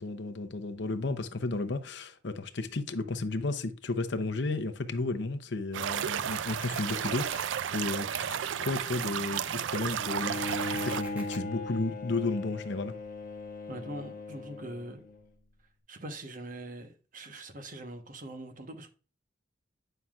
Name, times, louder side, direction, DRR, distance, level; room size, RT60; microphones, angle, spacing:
voice 1, 0.0-13.0, left 3 dB, 65° left, 0.8 m, -33 dB
sound 1, 5.7-11.0, right 9 dB, 75° right, 0.4 m, -33 dB
sound 2, 6.3-7.4 10.3-11.4, equal, 10° right, 1.6 m, -45 dB
Bowed string instrument, 10.0-15.2, left 2 dB, 45° left, 1.1 m, -38 dB
voice 2, 13.7-15.0 15.9-18.9, right 1 dB, 45° right, 1.1 m, -42 dB
9.2 x 5.6 x 2.4 m
head